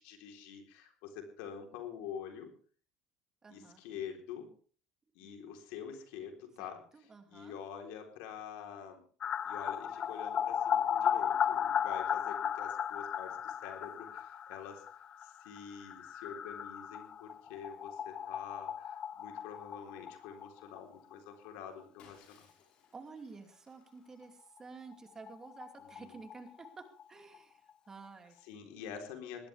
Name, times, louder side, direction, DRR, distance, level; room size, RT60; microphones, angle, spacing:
voice 1, 0.0-2.5 3.5-4.5 5.1-6.8 7.3-9.0 9.5-22.5 26.0-26.1 28.4-29.5, left 7 dB, 80° left, 4 dB, 3.8 m, -46 dB
voice 2, 3.4-3.8 5.2-5.3 6.6-7.6 22.9-28.3, right 4 dB, 25° right, 6 dB, 2.6 m, -51 dB
sound 1, 9.2-20.8 21.1-21.2 21.5-21.6 24.6-24.7 24.9-25.0 25.3-27.0 27.3-27.4, left 8 dB, 40° left, 0.6 m, -36 dB
Shatter, 22.0-24.7, left 7 dB, 55° left, 5.6 m, -65 dB
19.0 x 16.0 x 3.5 m, 0.43 s
supercardioid pair, 100°, 2 cm